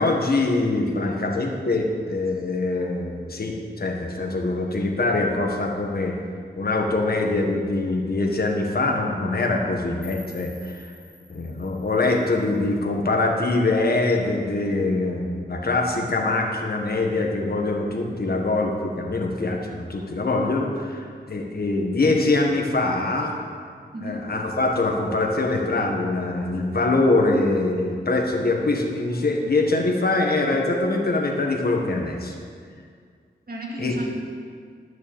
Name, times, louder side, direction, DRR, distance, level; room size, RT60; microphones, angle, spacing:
voice 1, 0.0-6.2 6.6-10.9 11.3-23.3 24.0-32.3 33.8-33.9, left 2 dB, 60° left, 1 dB, 1.7 m, -23 dB
voice 2, 0.9-1.5 2.3-2.4 23.9-24.3 33.5-34.1, equal, 60° right, -2 dB, 2.3 m, -35 dB
sound 1, 10.0-13.0, left 2 dB, 10° right, 2.7 m, -49 dB
12.0 x 6.1 x 7.3 m, 2.1 s
cardioid pair, 60°, 18 cm